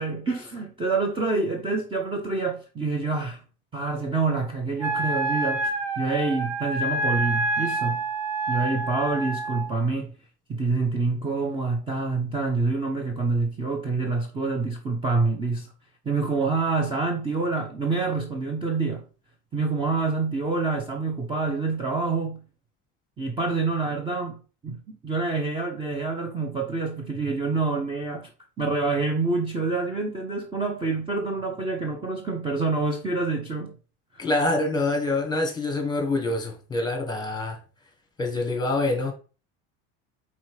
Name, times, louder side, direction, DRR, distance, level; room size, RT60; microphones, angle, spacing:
voice 1, 0.0-3.4 3.7-8.0 8.5-10.1 10.5-15.7 16.1-19.0 19.5-22.4 23.2-28.3 28.6-33.8 34.1-34.3, right 3 dB, 15° right, 0.8 m, -27 dB
Wind instrument woodwind instrument, 4.8-9.7, right 2 dB, 45° right, 1.9 m, -27 dB
voice 2, 34.2-37.6 38.2-39.1, left 2 dB, 10° left, 1.4 m, -26 dB
5.1 x 4.2 x 4.8 m
cardioid pair, 155°, 33 cm